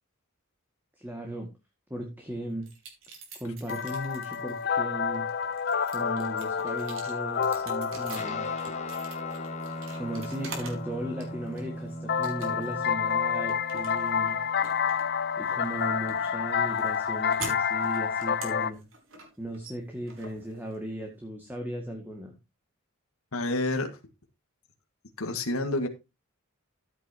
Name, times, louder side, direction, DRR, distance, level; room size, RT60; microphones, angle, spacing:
voice 1, 1.0-1.5 1.9-2.7 3.4-5.3 5.9-8.5 9.9-14.4 15.3-18.8 19.4-22.4, right 1 dB, 10° right, 2.0 m, -37 dB
sound 1, 2.6-4.6 5.1-10.9 11.2-11.8 12.2-12.8 13.1-21.0, right 3 dB, 65° right, 4.7 m, -45 dB
sound 2, 3.7-11.1 12.1-18.7, left 7 dB, 45° left, 0.6 m, -29 dB
Guitar, 8.1-16.9, left 1 dB, 30° left, 1.3 m, -41 dB
voice 2, 23.3-23.9 25.2-25.9, left 2 dB, 80° left, 1.8 m, -28 dB
14.0 x 9.1 x 2.9 m
head